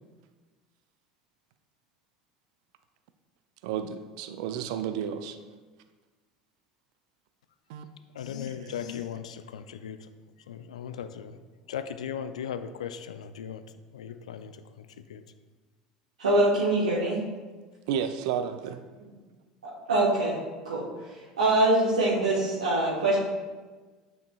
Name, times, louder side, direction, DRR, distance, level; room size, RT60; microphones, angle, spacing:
voice 1, 3.6-5.4 7.7-7.9 8.5-9.0 17.9-18.8, right 8 dB, 65° right, 10 dB, 0.4 m, -32 dB
voice 2, 8.2-10.0 10.5-11.4 11.7-13.6 13.9-14.5 15.1-15.2, left 8 dB, 75° left, 11 dB, 0.3 m, -37 dB
voice 3, 16.2-17.2 19.9-20.4 20.6-20.8 21.4-23.2, right 2 dB, 80° right, -8 dB, 1.2 m, -23 dB
9.4 x 5.2 x 2.3 m, 1.3 s
figure-of-eight pair, 75°, 4 cm